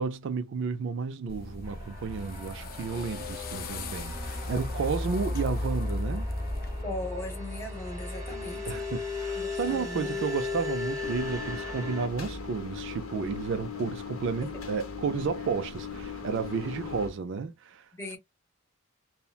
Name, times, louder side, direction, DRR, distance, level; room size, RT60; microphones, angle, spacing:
voice 1, 0.0-6.3 8.7-17.9, right 5 dB, 55° right, 0.3 m, -32 dB
sound 1, 1.3-6.8, left 3 dB, 40° left, 0.4 m, -41 dB
sound 2, 1.6-12.1, left 2 dB, 15° right, 1.0 m, -35 dB
voice 2, 6.8-8.8 9.3-10.2 14.4-14.8 17.9-18.2, left 1 dB, 10° left, 0.8 m, -39 dB
sound 3, 11.0-17.1, left 6 dB, 70° left, 0.7 m, -39 dB
2.7 x 2.1 x 2.2 m
head